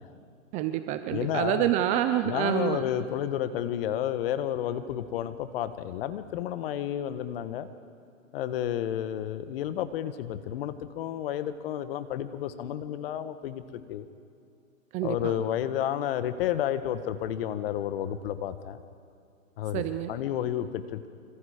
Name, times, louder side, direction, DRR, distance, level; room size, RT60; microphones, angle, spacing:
voice 1, 0.5-2.9 14.9-15.4 19.7-20.1, right 12 dB, 20° right, 9 dB, 0.6 m, -27 dB
voice 2, 1.1-1.7 2.2-7.7 8.3-14.1 15.0-18.8 19.6-19.8 20.1-21.1, left 11 dB, 45° left, 11 dB, 1.5 m, -31 dB
26.5 x 26.0 x 5.1 m, 2.4 s
hypercardioid pair, 140°, 40 cm